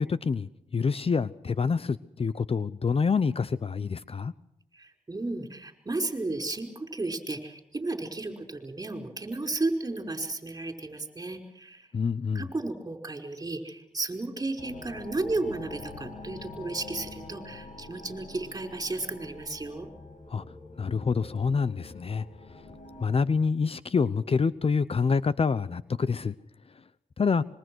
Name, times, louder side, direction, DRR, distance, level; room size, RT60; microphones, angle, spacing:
voice 1, 0.0-4.3 11.9-12.5 20.3-20.4 20.8-22.3 23.0-26.3 27.2-27.4, left 5 dB, 45° left, 0.8 m, -27 dB
voice 2, 4.7-11.9 12.3-19.9, right 2 dB, 25° right, 5.1 m, -33 dB
sound 1, 14.6-23.1, left 3 dB, 75° left, 7.0 m, -45 dB
26.0 x 23.0 x 6.3 m
cardioid pair, 70°, 13 cm